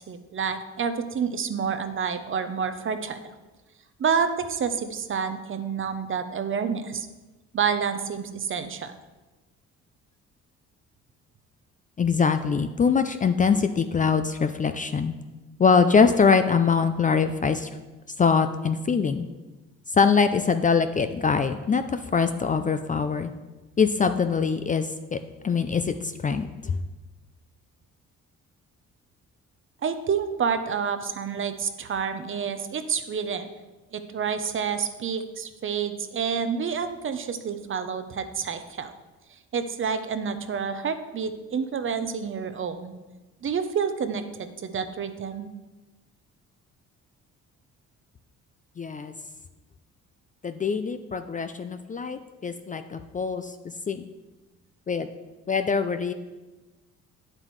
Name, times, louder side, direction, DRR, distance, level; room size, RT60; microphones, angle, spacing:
voice 1, 0.1-3.2 4.0-7.1 7.5-8.9 29.8-33.5 33.9-38.9 39.3-42.9 43.4-45.5, right 6 dB, 40° right, 10 dB, 0.7 m, -29 dB
voice 2, 12.0-15.1 15.6-17.7 18.2-19.3 19.9-23.3 23.8-26.8 48.8-49.1 50.4-53.6 53.9-54.0 54.9-55.1 55.5-56.1, left 5 dB, 25° left, 9 dB, 0.4 m, -23 dB
8.8 x 7.6 x 3.1 m, 1.2 s
cardioid pair, 90°, 30 cm